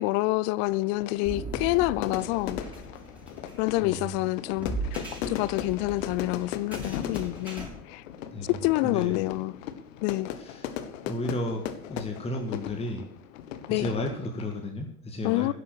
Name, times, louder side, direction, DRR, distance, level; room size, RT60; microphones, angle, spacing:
voice 1, 0.0-2.6 3.6-5.0 5.3-8.0 8.6-9.5 10.0-10.3 13.7-13.9 15.2-15.5, left 20 dB, 35° left, 0.6 m, -27 dB
Fire / Fireworks, 0.7-14.7, left 9 dB, 55° left, 1.4 m, -38 dB
sound 1, 1.2-7.7, right 2 dB, 5° right, 6.3 m, -39 dB
voice 2, 3.8-4.2 8.3-9.2 10.4-10.7 11.1-13.0 13.7-15.5, left 1 dB, 15° left, 2.0 m, -33 dB
12.5 x 11.0 x 6.4 m
figure-of-eight pair, 80°, 45 cm